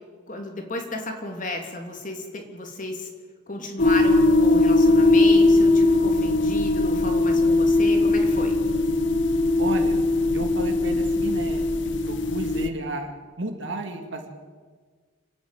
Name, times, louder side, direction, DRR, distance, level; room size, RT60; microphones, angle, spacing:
voice 1, 0.3-3.1 3.5-8.6, left 2 dB, 40° left, 3 dB, 3.2 m, -33 dB
sound 1, 3.8-12.7, left 2 dB, 60° left, 1.1 m, -20 dB
voice 2, 9.6-10.1 10.3-11.7 12.0-14.3, right 1 dB, 60° right, 4 dB, 2.5 m, -33 dB
29.5 x 10.0 x 9.3 m, 1.5 s
head